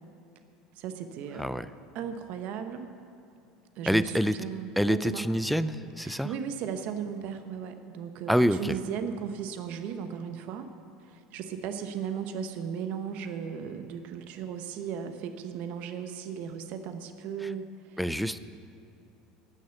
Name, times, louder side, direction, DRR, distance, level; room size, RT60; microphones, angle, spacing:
voice 1, 0.8-1.5 1.9-2.9 3.7-5.2 6.0-10.7 11.0-18.0, right 7 dB, 60° right, 8 dB, 0.9 m, -36 dB
voice 2, 1.4-1.7 3.9-4.4 4.8-6.3 8.3-8.8 17.4-17.5 18.0-18.4, equal, ahead, 13 dB, 0.5 m, -26 dB
18.0 x 6.4 x 7.1 m, 2.7 s
hypercardioid pair, 90°, 3 cm